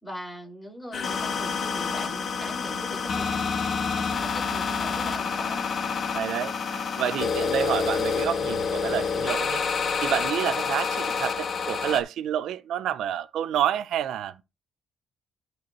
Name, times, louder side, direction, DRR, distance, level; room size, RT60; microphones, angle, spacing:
voice 1, 0.0-5.7 7.2-7.4, equal, 10° left, 4.9 m, -41 dB
sound 1, 0.9-12.0, left 5 dB, 50° left, 1.2 m, -28 dB
voice 2, 6.1-9.6 10.0-14.4, right 10 dB, 80° right, 0.4 m, -29 dB
12.0 x 4.4 x 3.0 m
cardioid pair, 90°, 0 cm